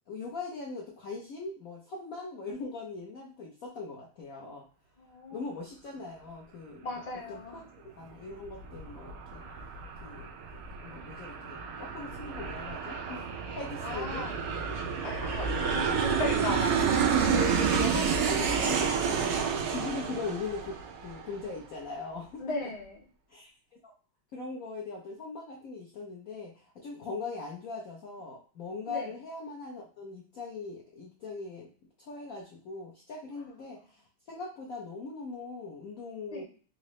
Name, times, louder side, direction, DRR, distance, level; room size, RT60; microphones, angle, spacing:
voice 1, 0.1-4.6 5.3-7.6 8.0-9.4 10.0-10.3 10.8-13.2 13.5-14.2 15.8-16.1 17.8-22.4 23.3-23.5 24.3-31.7 32.0-34.0 34.3-36.4, left 3 dB, 65° left, -3 dB, 0.8 m, -40 dB
voice 2, 5.0-5.4 6.8-7.6 13.8-14.3 15.0-17.7 18.8-19.0 22.4-23.1 27.0-27.2 28.9-29.1 33.3-33.5 36.3-36.4, left 2 dB, 35° left, -1 dB, 0.6 m, -37 dB
Aircraft, 8.3-21.5, right 6 dB, 80° right, 0.7 m, -30 dB
3.9 x 2.6 x 3.0 m, 0.40 s
omnidirectional pair, 2.2 m